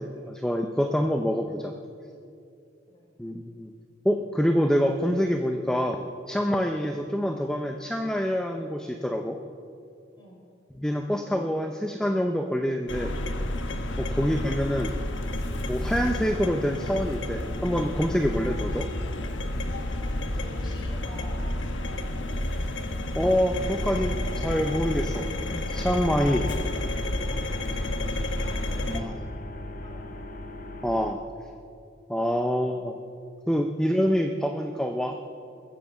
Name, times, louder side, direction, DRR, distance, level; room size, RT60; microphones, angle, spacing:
voice 1, 0.0-1.7 3.2-3.7 4.0-9.4 10.8-13.1 14.0-15.0 15.7-18.9 23.2-26.5 28.9-29.1 30.8-31.2 32.1-33.0 33.5-35.2, equal, 5° left, 4 dB, 0.5 m, -26 dB
sound 1, 12.9-29.0, left 1 dB, 85° left, 1.2 m, -30 dB
voice 2, 19.9-21.4 26.0-26.8 27.1-29.4 29.8-30.2, left 1 dB, 25° left, -3 dB, 4.6 m, -48 dB
sound 2, 23.6-31.1, left 1 dB, 45° left, 0.8 m, -39 dB
22.0 x 7.7 x 6.8 m, 2.5 s
head